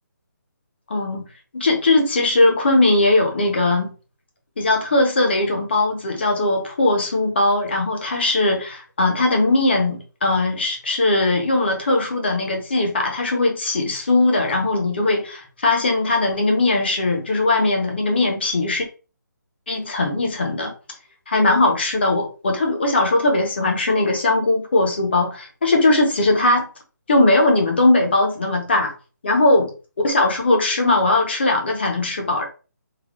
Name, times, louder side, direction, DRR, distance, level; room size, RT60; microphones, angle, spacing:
voice 1, 0.9-1.2 1.5-3.9 4.6-18.9 19.7-20.7 21.3-26.7 27.1-28.9 29.2-29.7 30.0-32.5, left 2 dB, 35° left, 0.7 m, -19 dB
3.3 x 2.2 x 2.3 m
hypercardioid pair, 175°, 10 cm